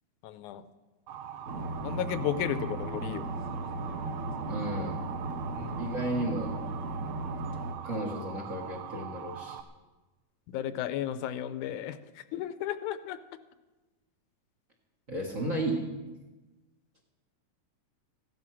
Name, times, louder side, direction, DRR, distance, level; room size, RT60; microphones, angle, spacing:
voice 1, 0.2-0.6 1.8-3.3 5.6-5.8 10.5-13.2, left 11 dB, 80° left, 12 dB, 2.0 m, -34 dB
Motor vehicle (road) / Siren, 1.1-9.6, right 8 dB, 75° right, 1.5 m, -42 dB
sound 1, 1.5-7.7, right 2 dB, 55° right, 0.8 m, -36 dB
voice 2, 4.5-5.0 5.8-6.6 7.8-9.6 15.1-15.9, right 1 dB, 35° right, 1 dB, 1.4 m, -33 dB
15.0 x 12.5 x 5.8 m, 1.2 s
omnidirectional pair, 3.6 m